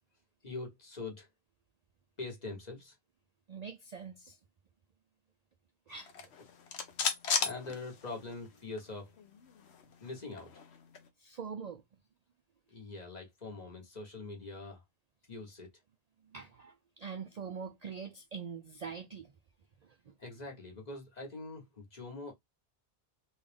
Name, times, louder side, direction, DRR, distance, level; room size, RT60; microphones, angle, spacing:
voice 1, 0.4-1.3 2.2-3.0 7.4-9.2 10.0-10.6 12.7-14.8 15.3-15.7 20.2-22.3, left 3 dB, 40° left, 1.3 m, -43 dB
voice 2, 3.5-4.4 5.9-6.1 11.2-11.8 16.2-19.3 19.8-20.1, right 6 dB, 55° right, 0.5 m, -44 dB
sound 1, 6.0-8.5 8.8-8.9 9.2-11.1, left 6 dB, 80° left, 1.0 m, -36 dB
3.8 x 2.4 x 3.4 m
omnidirectional pair, 1.1 m